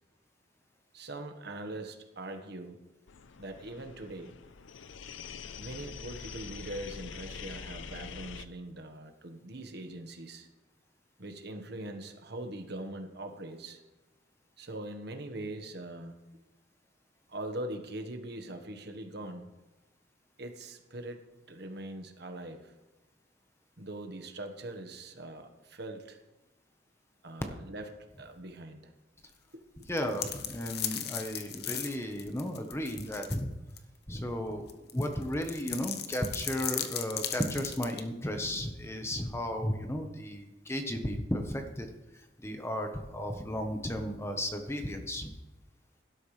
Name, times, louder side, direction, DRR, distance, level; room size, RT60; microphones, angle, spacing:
voice 1, 0.9-2.8 3.4-4.3 5.6-10.5 11.2-13.8 14.6-16.1 17.3-19.5 20.4-21.2 21.5-22.7 23.8-26.2 27.2-28.9 29.8-29.9, right 1 dB, 60° right, 5 dB, 1.4 m, -42 dB
sound 1, 3.1-8.5, left 6 dB, 85° left, 0.6 m, -44 dB
sound 2, 29.8-33.4 33.8-33.9 34.7-38.0, left 10 dB, 55° left, 1.0 m, -37 dB
voice 2, 29.9-33.5 34.1-41.9 42.4-45.3, equal, 15° left, 5 dB, 1.1 m, -34 dB
17.0 x 12.5 x 3.3 m, 1.1 s
head